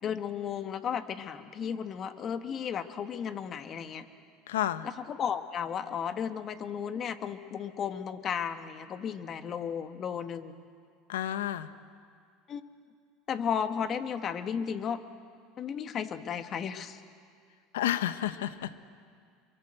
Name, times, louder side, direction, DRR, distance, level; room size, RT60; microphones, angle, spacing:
voice 1, 0.0-4.1 4.8-10.5 12.5-12.6 13.3-15.0 15.6-17.0, left 7 dB, 45° left, 9 dB, 1.6 m, -34 dB
voice 2, 4.5-4.9 11.1-11.7 17.7-18.8, left 12 dB, 85° left, 13 dB, 1.0 m, -31 dB
26.5 x 24.0 x 7.8 m, 2.2 s
hypercardioid pair, 90°, 0 cm